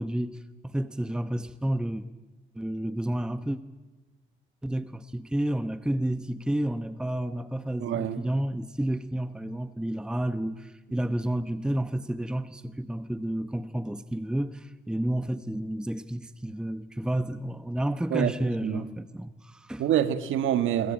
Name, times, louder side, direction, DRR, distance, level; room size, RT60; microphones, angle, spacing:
voice 1, 0.0-2.0 2.5-3.6 4.6-19.9, right 1 dB, 5° right, 0.9 m, -30 dB
voice 2, 7.8-8.2 18.1-18.3 18.6-18.9 19.8-20.9, right 10 dB, 85° right, 1.8 m, -26 dB
26.5 x 24.0 x 9.0 m
cardioid pair, 90°, 20 cm